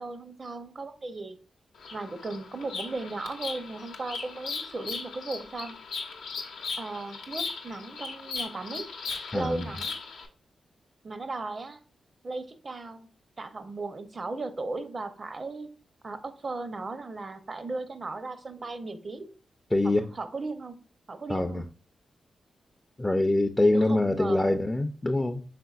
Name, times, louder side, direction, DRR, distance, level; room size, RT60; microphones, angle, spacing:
voice 1, 0.0-1.4 1.9-5.8 6.8-8.8 9.3-10.0 11.0-11.8 12.2-13.1 13.4-15.7 16.0-19.3 19.8-20.8 21.1-21.6 23.7-24.6, right 3 dB, 45° right, 0.6 m, -36 dB
Bird vocalization bird call bird song, 1.7-10.3, left 4 dB, 85° left, 0.7 m, -38 dB
voice 2, 9.3-9.7 19.7-20.1 21.3-21.7 23.0-25.4, left 2 dB, 20° left, 0.4 m, -24 dB
5.0 x 3.8 x 2.4 m
supercardioid pair, 45°, 0 cm